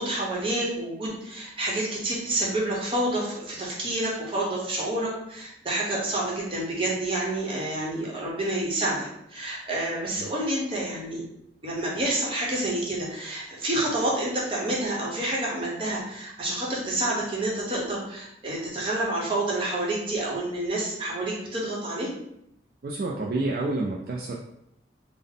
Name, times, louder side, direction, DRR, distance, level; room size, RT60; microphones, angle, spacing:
voice 1, 0.0-11.2 11.6-22.1, right 1 dB, 30° right, -4 dB, 0.9 m, -28 dB
voice 2, 22.8-24.3, right 2 dB, 55° right, -3 dB, 0.3 m, -29 dB
3.6 x 2.0 x 3.6 m, 0.79 s
head